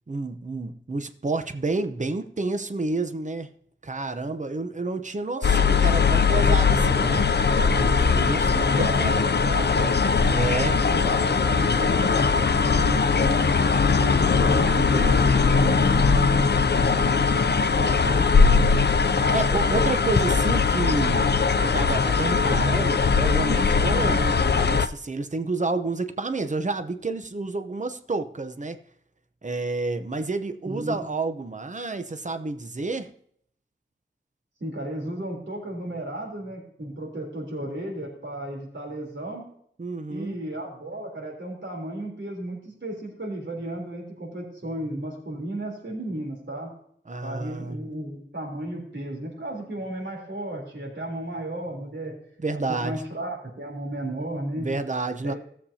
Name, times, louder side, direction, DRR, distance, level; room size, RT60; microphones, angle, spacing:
voice 1, 0.1-3.5 3.8-7.3 7.7-8.7 9.0-9.1 10.3-10.7 16.1-16.7 18.3-28.8 29.4-33.1 39.8-40.4 47.1-47.8 52.4-53.0 54.6-55.3, right 3 dB, 40° right, 8 dB, 0.8 m, -30 dB
sound 1, 5.4-24.9, left 5 dB, 55° left, 0.5 m, -20 dB
voice 2, 8.6-10.0 10.7-13.6 14.0-18.3 30.6-30.9 34.6-39.4 40.1-46.7 47.2-52.1 52.5-54.7 55.2-55.4, right 1 dB, 70° right, -1 dB, 3.6 m, -34 dB
17.5 x 7.4 x 2.8 m, 0.65 s
wide cardioid pair, 75°, 20 cm